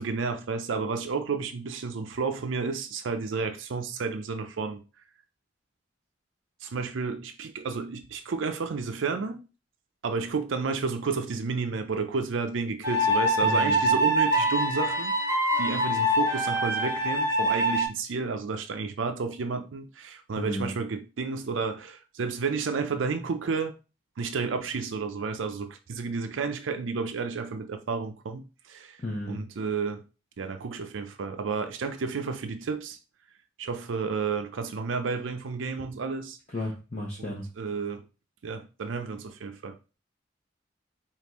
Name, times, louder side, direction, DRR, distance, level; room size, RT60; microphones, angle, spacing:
voice 1, 0.0-4.8 6.6-9.4 10.0-23.7 24.2-29.0 29.2-30.0 30.4-33.0 33.6-36.4 37.2-38.0 38.4-39.8, right 4 dB, 90° right, 0.5 m, -31 dB
sound 1, 12.8-17.9, right 1 dB, 15° right, 0.7 m, -24 dB
voice 2, 13.4-13.9 20.3-20.7 29.0-29.4 36.5-37.4, left 1 dB, 35° left, 0.7 m, -33 dB
5.1 x 2.5 x 3.0 m
head